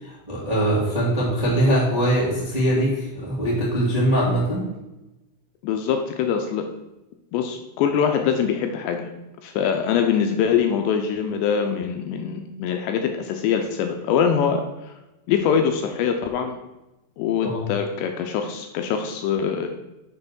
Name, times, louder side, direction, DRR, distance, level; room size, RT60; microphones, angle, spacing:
voice 1, 0.0-4.6 17.4-17.7, right 1 dB, 80° right, -7 dB, 0.3 m, -22 dB
voice 2, 5.6-6.7 7.3-9.1 9.4-14.9 15.3-16.6 17.2-19.7, left 7 dB, 80° left, 5 dB, 2.6 m, -23 dB
6.8 x 5.5 x 6.1 m, 0.98 s
omnidirectional pair, 5.5 m